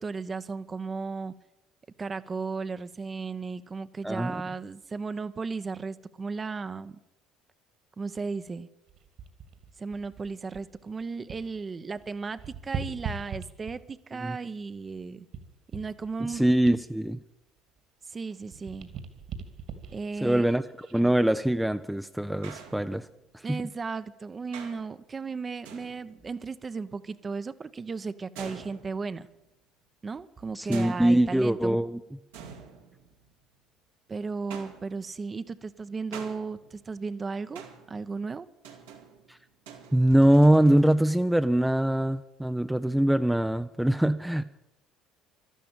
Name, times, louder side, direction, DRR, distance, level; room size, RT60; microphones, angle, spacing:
voice 1, 0.0-1.3 2.0-7.0 8.0-8.7 9.8-15.3 15.7-16.4 18.1-18.9 19.9-20.4 23.4-29.3 30.0-31.7 34.1-37.6 37.9-38.5, right 4 dB, 30° right, 12 dB, 1.0 m, -35 dB
voice 2, 4.0-4.4 14.2-14.4 16.3-17.2 20.2-23.0 23.5-23.6 30.5-32.0 39.3-39.4 39.9-44.4, right 1 dB, 5° right, 9 dB, 0.6 m, -23 dB
sound 1, 8.9-11.6 11.9-14.0 14.6-18.1 18.4-21.2 21.8-22.0, right 6 dB, 60° right, 2.5 m, -41 dB
sound 2, 22.4-23.4 24.5-25.0 25.6-26.3 28.4-29.4 30.7-31.7 32.3-33.5 34.5-35.2 36.1-37.0 37.6-38.1 38.6-40.9, right 7 dB, 85° right, 2.5 m, -47 dB
12.5 x 12.0 x 8.9 m, 0.89 s
hypercardioid pair, 65°, 0 cm